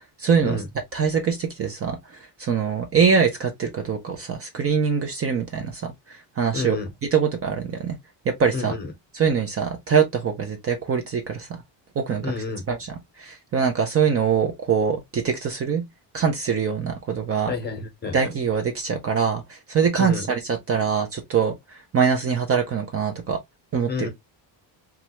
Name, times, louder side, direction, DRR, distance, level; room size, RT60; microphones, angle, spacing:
voice 1, 0.2-0.6 0.9-2.0 2.4-6.8 7.1-8.0 8.3-8.7 9.1-11.6 12.0-12.3 12.7-15.8 16.1-17.5 18.1-23.4 23.7-24.1, right 6 dB, 35° right, 0.5 m, -23 dB
voice 2, 6.5-6.9 8.5-8.9 12.2-12.6 17.5-18.2 20.0-20.3 23.9-24.1, left 4 dB, 25° left, 0.8 m, -29 dB
3.1 x 2.4 x 2.8 m
cardioid pair, 150°, 43 cm